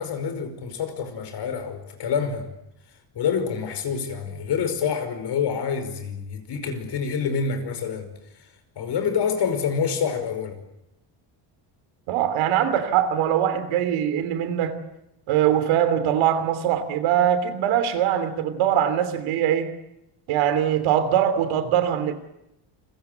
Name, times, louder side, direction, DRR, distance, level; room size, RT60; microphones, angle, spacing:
voice 1, 0.0-2.5 3.2-8.1 8.8-10.6, left 6 dB, 55° left, 5.4 m, -27 dB
voice 2, 12.1-14.8 15.3-19.7 20.3-22.1, right 10 dB, 75° right, 3.2 m, -22 dB
29.0 x 22.5 x 8.2 m
cardioid pair, 100°, 48 cm